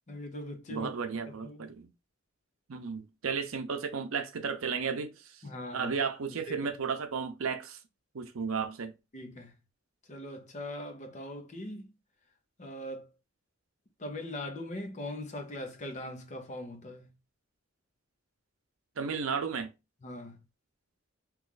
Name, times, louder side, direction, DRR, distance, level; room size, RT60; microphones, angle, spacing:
voice 1, 0.1-0.9 1.4-1.7 5.4-5.9 6.3-6.7 9.1-9.5 10.1-11.9 12.6-13.1 14.0-17.1 20.0-20.4, left 1 dB, 35° left, 0.7 m, -41 dB
voice 2, 0.7-1.9 2.7-5.4 5.7-7.8 8.1-8.9 19.0-19.7, right 5 dB, 80° right, 0.6 m, -34 dB
3.0 x 2.5 x 3.7 m
head